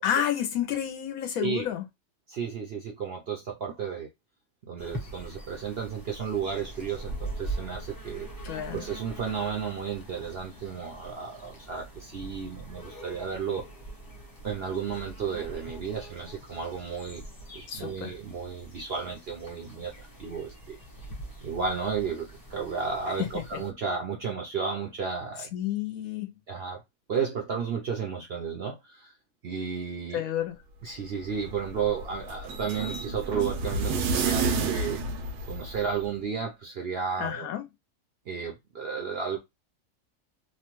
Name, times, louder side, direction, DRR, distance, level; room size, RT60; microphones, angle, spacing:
voice 1, 0.0-1.9 8.4-8.8 17.7-18.1 23.2-23.3 25.5-26.3 30.1-30.6 37.2-37.6, left 10 dB, 70° left, 1.0 m, -30 dB
voice 2, 2.3-4.1 4.7-8.3 8.7-13.7 14.4-17.2 17.5-20.8 21.4-25.5 26.5-26.8 27.1-29.1 29.4-30.2 30.8-35.0 35.5-37.5 38.3-39.4, right 6 dB, 60° right, 0.7 m, -33 dB
sound 1, 4.8-23.7, right 2 dB, 20° left, 0.6 m, -43 dB
sound 2, 31.0-36.1, right 4 dB, 80° right, 1.2 m, -30 dB
3.0 x 2.1 x 3.0 m
omnidirectional pair, 1.6 m